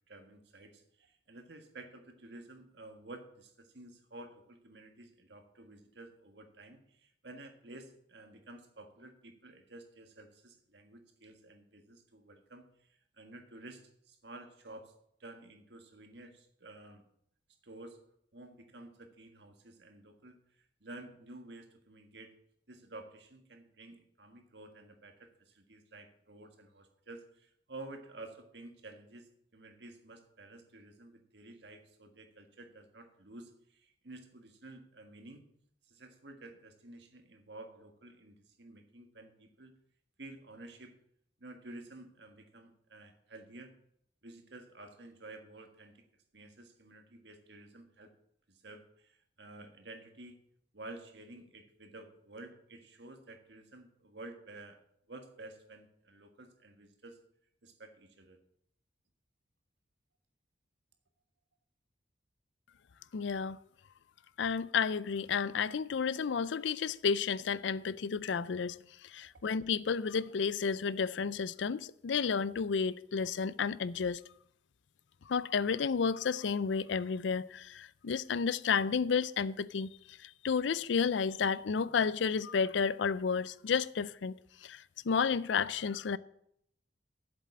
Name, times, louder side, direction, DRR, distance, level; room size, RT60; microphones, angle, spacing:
voice 1, 0.1-14.9 15.2-17.1 17.6-18.0 18.3-22.3 22.7-35.4 35.8-39.7 40.2-40.9 41.4-43.7 44.2-46.0 46.3-48.1 48.5-50.4 50.7-54.8 55.1-57.2 57.6-58.4 69.2-69.3, right 2 dB, 65° right, 1.6 m, -51 dB
voice 2, 63.1-63.6 64.4-68.8 69.1-74.2 75.3-79.9 80.2-84.3 84.6-86.2, left 6 dB, 80° left, 0.4 m, -31 dB
7.8 x 7.5 x 8.5 m
head